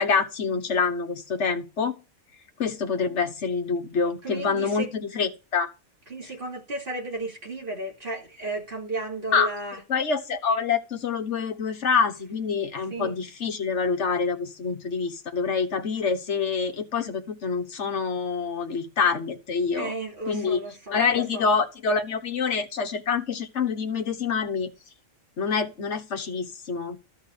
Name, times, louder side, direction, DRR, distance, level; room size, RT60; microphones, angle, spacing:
voice 1, 0.0-2.0 2.6-5.7 6.2-6.3 9.3-9.5 9.9-19.9 20.3-20.6 20.9-24.7 25.4-27.0, left 5 dB, 55° left, 1.5 m, -26 dB
voice 2, 4.2-4.9 6.1-9.8 12.9-13.1 19.7-21.5, right 2 dB, 40° right, 3.0 m, -34 dB
12.5 x 4.6 x 7.0 m
omnidirectional pair, 1.5 m